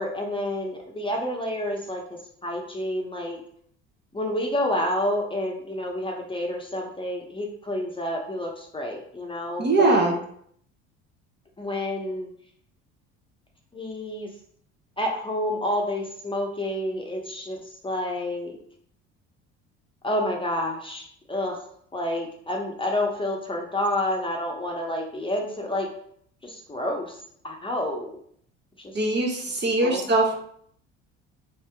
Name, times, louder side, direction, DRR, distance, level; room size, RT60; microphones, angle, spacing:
voice 1, 0.0-2.0 2.4-3.4 4.1-10.2 11.6-12.3 13.7-14.3 15.0-18.6 20.0-21.6 21.9-25.9 26.4-27.2 27.4-28.2 28.8-28.9 29.8-30.1, left 1 dB, 15° left, 0 dB, 0.8 m, -29 dB
voice 2, 9.6-10.1 28.9-30.3, right 2 dB, 35° right, 0 dB, 0.9 m, -21 dB
2.8 x 2.7 x 3.4 m, 0.63 s
hypercardioid pair, 70°, 31 cm